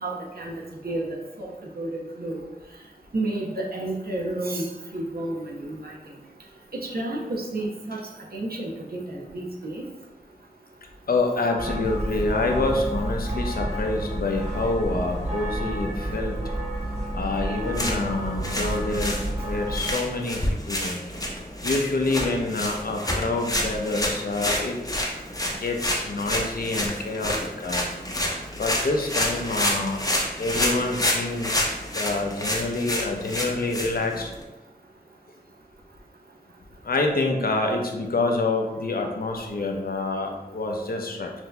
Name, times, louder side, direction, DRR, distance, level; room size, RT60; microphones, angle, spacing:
voice 1, 0.0-2.4 3.1-4.7 4.9-6.0 6.7-8.0 8.3-9.8, right 2 dB, 75° right, -2 dB, 0.7 m, -31 dB
voice 2, 11.1-16.4 17.1-21.0 21.6-24.8 25.5-27.3 27.6-27.9 28.5-30.0 30.4-31.5 31.9-34.3 36.8-41.3, left 2 dB, 70° left, 2 dB, 0.6 m, -27 dB
sound 1, 11.6-19.9, right 1 dB, 40° right, 1.1 m, -30 dB
sound 2, 17.6-34.4, left 1 dB, 20° left, 0.6 m, -29 dB
5.8 x 2.7 x 2.2 m, 1.1 s
wide cardioid pair, 75°, 16 cm